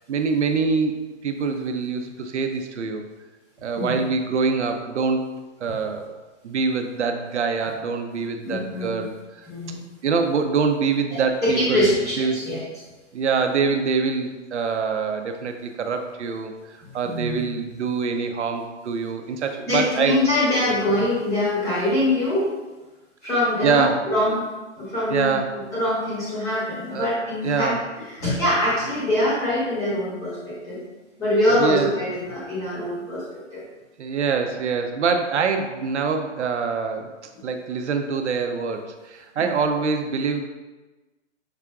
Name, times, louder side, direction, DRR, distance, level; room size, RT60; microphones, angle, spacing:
voice 1, 0.1-3.1 3.6-5.3 5.6-6.1 6.4-9.5 10.0-12.4 13.1-20.2 23.6-24.1 25.1-25.6 26.9-27.1 27.4-27.8 31.6-31.9 34.0-37.1 37.4-40.4, right 5 dB, 70° right, 6 dB, 0.6 m, -25 dB
voice 2, 8.4-8.9 9.5-9.8 11.1-12.6 17.0-17.4 19.7-22.5 23.2-24.4 24.8-27.7 28.0-30.8 31.2-33.6 39.4-39.5, left 1 dB, 10° left, -7 dB, 0.8 m, -24 dB
5.6 x 3.6 x 2.3 m, 1.2 s
hypercardioid pair, 155°, 36 cm